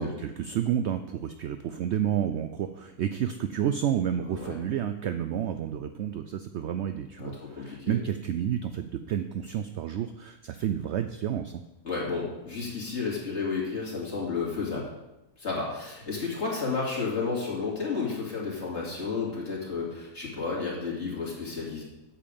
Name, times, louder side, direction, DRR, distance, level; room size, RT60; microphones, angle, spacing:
voice 1, 0.0-11.6, right 9 dB, 70° right, 9 dB, 0.6 m, -30 dB
voice 2, 4.2-4.6 7.2-8.0 11.8-14.8 15.4-21.8, left 4 dB, 45° left, -4 dB, 2.8 m, -32 dB
8.6 x 7.7 x 5.2 m, 0.97 s
omnidirectional pair, 1.6 m